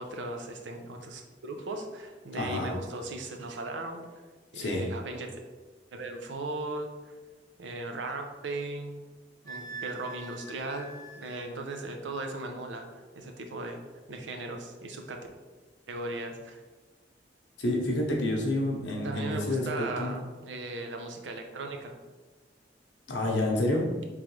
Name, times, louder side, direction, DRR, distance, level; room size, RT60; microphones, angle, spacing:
voice 1, 0.0-4.1 4.5-5.3 5.9-7.1 7.6-9.0 9.4-13.8 14.1-15.2 15.9-16.6 19.0-22.0, right 2 dB, 90° right, 4 dB, 0.5 m, -37 dB
voice 2, 2.3-2.7 4.5-4.9 17.6-20.1 23.1-23.9, left 1 dB, 85° left, -1 dB, 0.8 m, -29 dB
Wind instrument woodwind instrument, 9.5-11.5, right 4 dB, 20° left, 0.7 m, -43 dB
3.7 x 3.1 x 3.1 m, 1.3 s
head